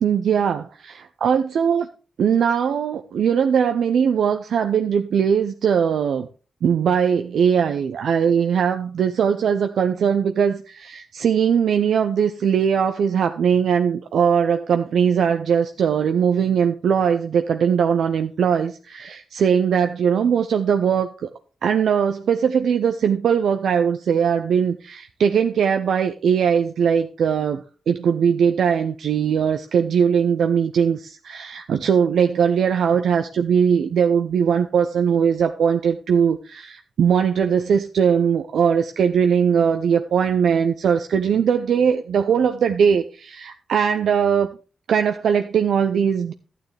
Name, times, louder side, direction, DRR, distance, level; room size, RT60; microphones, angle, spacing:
voice 1, 0.0-1.9 2.2-6.3 6.6-21.3 21.6-44.5 44.9-46.3, right 7 dB, 80° right, 7 dB, 0.6 m, -20 dB
12.0 x 9.2 x 3.4 m, 0.35 s
cardioid pair, 75°, 0 cm